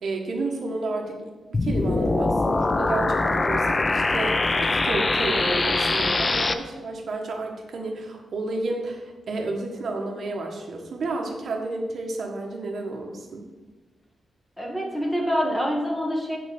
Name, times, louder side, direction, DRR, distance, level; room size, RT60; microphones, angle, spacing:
voice 1, 0.0-13.4, right 2 dB, 55° right, 1 dB, 1.3 m, -31 dB
sound 1, 1.5-6.5, left 3 dB, 25° left, 0.4 m, -23 dB
voice 2, 14.6-16.4, equal, 10° left, -1 dB, 1.4 m, -26 dB
9.0 x 4.2 x 7.0 m, 1.3 s
wide cardioid pair, 170°, 0 cm